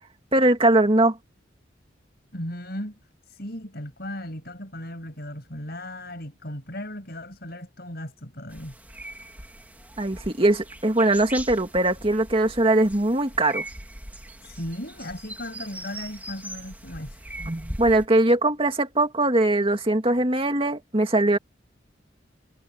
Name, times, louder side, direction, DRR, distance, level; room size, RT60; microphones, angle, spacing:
voice 1, 0.3-1.2 10.0-13.6 17.4-21.4, right 2 dB, 30° right, 2.4 m, -21 dB
voice 2, 2.3-3.0 3.3-8.8 14.4-17.3, left 1 dB, 55° left, 7.1 m, -36 dB
sound 1, 8.5-18.1, right 1 dB, 10° right, 2.8 m, -40 dB
head